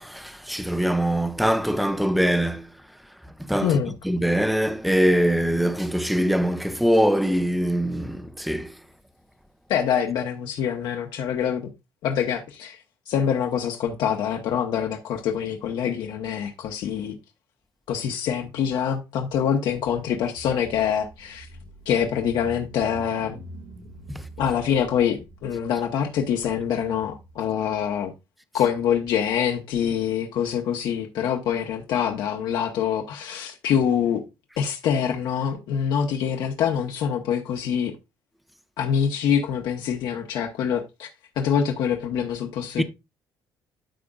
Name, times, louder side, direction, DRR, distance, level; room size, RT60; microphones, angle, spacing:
voice 1, 0.0-2.7 3.4-8.8 24.1-24.2 42.8-42.9, equal, ahead, 0.5 m, -23 dB
voice 2, 3.6-3.9 9.7-11.7 12.0-12.8 13.1-17.1 17.9-21.5 21.9-23.4 24.4-28.1 28.5-34.2 34.6-37.9 38.8-41.1 41.4-42.8, left 8 dB, 70° left, 1.1 m, -25 dB
Car / Engine, 20.4-27.4, right 1 dB, 75° right, 1.4 m, -45 dB
12.5 x 5.1 x 2.4 m
cardioid pair, 165°, 8 cm